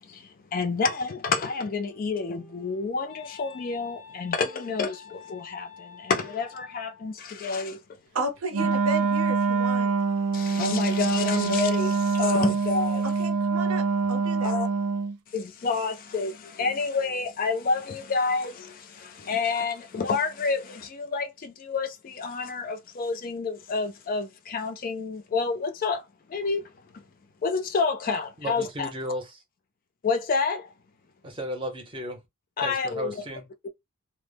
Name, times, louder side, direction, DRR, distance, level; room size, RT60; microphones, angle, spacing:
voice 1, 0.0-7.8 10.3-13.1 14.4-14.7 15.3-26.0 26.3-26.7 26.9-27.0 27.4-28.9 30.0-30.7 32.6-33.2 33.6-33.7, left 4 dB, 40° left, 0.3 m, -29 dB
Wind instrument woodwind instrument, 1.9-7.2, left 6 dB, 85° left, 0.6 m, -48 dB
voice 2, 8.1-9.9 13.2-14.5, right 3 dB, 70° right, 0.7 m, -32 dB
Wind instrument woodwind instrument 2, 8.5-15.2, right 4 dB, 90° right, 0.3 m, -25 dB
voice 3, 28.4-29.2 31.2-32.2 32.6-33.5, equal, 25° right, 0.6 m, -34 dB
2.0 x 2.0 x 3.3 m
head